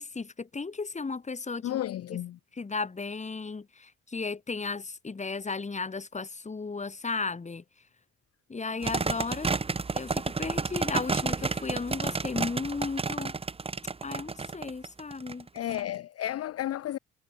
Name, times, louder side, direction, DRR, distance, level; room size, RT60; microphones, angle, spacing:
voice 1, 0.0-1.8 2.1-2.2 2.5-7.6 8.5-9.5 9.9-13.3 14.0-15.5, left 4 dB, 25° left, 1.8 m, -35 dB
voice 2, 1.6-2.4 15.5-17.0, left 12 dB, 50° left, 0.6 m, -32 dB
sound 1, 8.8-15.8, right 4 dB, 20° right, 0.8 m, -31 dB
cardioid pair, 90°, 30 cm